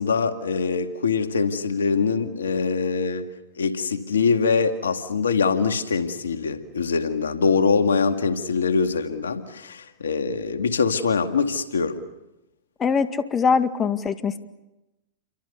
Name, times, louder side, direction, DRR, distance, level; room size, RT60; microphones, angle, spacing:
voice 1, 0.0-3.3 3.6-12.0, left 5 dB, 90° left, 2.1 m, -23 dB
voice 2, 12.8-14.4, left 5 dB, 25° left, 2.1 m, -22 dB
29.5 x 25.0 x 6.9 m
hypercardioid pair, 110°, 0 cm